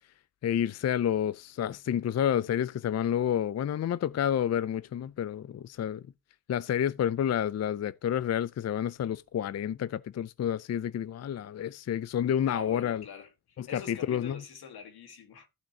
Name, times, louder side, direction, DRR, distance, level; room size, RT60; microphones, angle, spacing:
voice 1, 0.4-6.0 6.5-13.0 13.6-14.4, left 9 dB, 45° left, 0.5 m, -29 dB
voice 2, 12.5-15.5, left 7 dB, 85° left, 1.7 m, -45 dB
14.5 x 5.9 x 2.8 m
cardioid pair, 55°, 37 cm